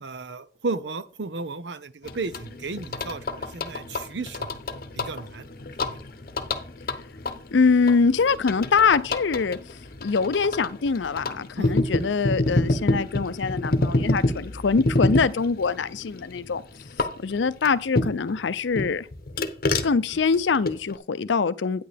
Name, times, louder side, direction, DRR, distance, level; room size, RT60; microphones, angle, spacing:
voice 1, 0.0-4.5 5.0-5.5 5.8-6.0 11.6-11.7 18.0-18.1, right 3 dB, 75° right, 0.7 m, -34 dB
sound 1, 2.0-18.4 18.8-21.0, left 2 dB, 50° left, 0.8 m, -28 dB
voice 2, 7.5-9.6 10.0-16.6 17.2-19.1 19.8-21.8, left 5 dB, 85° left, 0.5 m, -23 dB
9.4 x 8.8 x 3.4 m
head